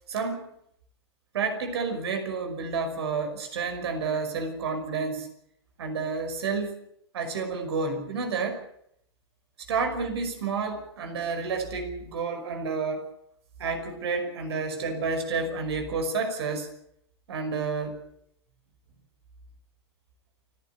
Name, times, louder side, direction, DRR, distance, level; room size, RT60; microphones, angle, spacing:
voice 1, 0.1-0.5 1.3-5.3 5.8-6.9 7.1-8.7 9.7-13.1 13.6-16.7 17.3-18.0, right 4 dB, 70° right, 7 dB, 5.7 m, -30 dB
29.5 x 11.5 x 9.3 m, 0.72 s
hypercardioid pair, 120°, 14 cm